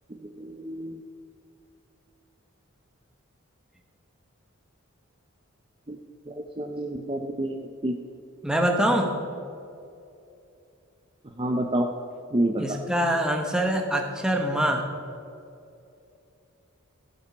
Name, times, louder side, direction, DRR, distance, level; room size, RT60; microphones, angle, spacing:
voice 1, 0.2-1.0 5.9-6.0 6.3-7.9 11.4-11.9 12.3-12.6, right 1 dB, 25° right, 3 dB, 0.6 m, -28 dB
voice 2, 8.4-9.1 12.6-14.9, right 1 dB, 5° right, 2 dB, 1.1 m, -24 dB
15.0 x 8.2 x 5.3 m, 2.6 s
head